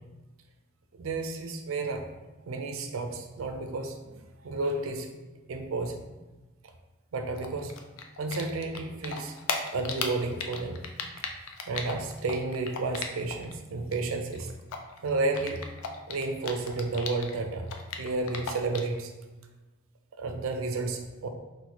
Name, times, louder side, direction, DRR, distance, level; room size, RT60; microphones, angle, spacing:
voice 1, 0.9-2.1 2.5-4.0 4.4-5.1 5.5-6.0 7.1-7.7 8.2-9.4 9.7-10.8 11.7-14.5 15.0-15.6 16.1-17.7 18.0-19.1 20.2-21.3, right 3 dB, 75° right, 5 dB, 0.4 m, -31 dB
Typing, 7.4-8.8 9.0-13.5 13.8-17.3 17.6-19.0, left 5 dB, 90° left, 0.4 m, -36 dB
2.9 x 2.1 x 4.1 m, 1.2 s
head